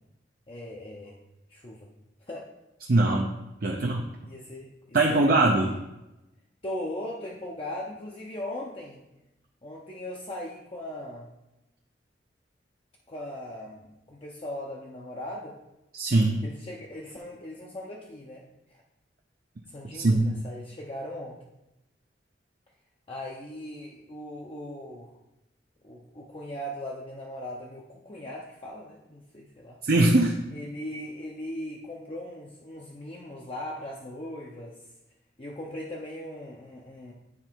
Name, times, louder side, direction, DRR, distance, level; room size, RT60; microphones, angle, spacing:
voice 1, 0.5-1.2 1.5-1.9 2.2-2.5 3.7-3.8 4.2-5.4 6.6-9.0 9.6-11.3 13.1-15.5 16.4-18.4 18.7-18.8 19.7-21.4 23.1-25.1 25.8-29.8 30.5-34.8 35.4-37.1, left 1 dB, 30° left, -3 dB, 0.6 m, -39 dB
voice 2, 2.9-3.3 3.6-4.0 4.9-5.7 15.9-16.4 19.9-20.4 29.8-30.4, right 2 dB, 55° right, 0 dB, 0.6 m, -21 dB
9.7 x 3.3 x 4.5 m, 0.94 s
head